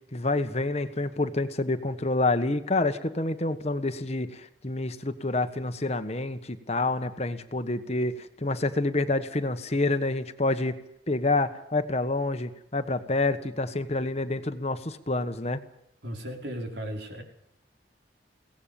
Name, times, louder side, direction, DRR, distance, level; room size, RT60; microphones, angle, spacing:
voice 1, 0.1-10.8 11.1-15.6, left 2 dB, 35° left, 9 dB, 1.4 m, -28 dB
voice 2, 16.0-17.2, equal, 70° right, 3 dB, 5.2 m, -35 dB
22.5 x 18.0 x 7.2 m, 0.77 s
head